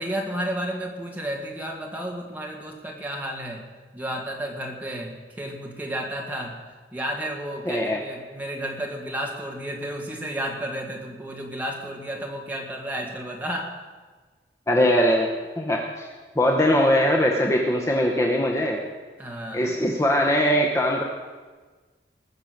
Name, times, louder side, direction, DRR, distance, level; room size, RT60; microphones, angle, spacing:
voice 1, 0.0-3.7 3.9-6.6 6.9-13.7 19.2-19.7, right 1 dB, 10° right, -1 dB, 2.0 m, -32 dB
voice 2, 7.6-8.0 14.7-15.3 15.6-16.1 16.3-18.8 19.5-21.0, equal, 15° left, 0 dB, 1.0 m, -21 dB
20.0 x 6.7 x 6.7 m, 1.4 s
head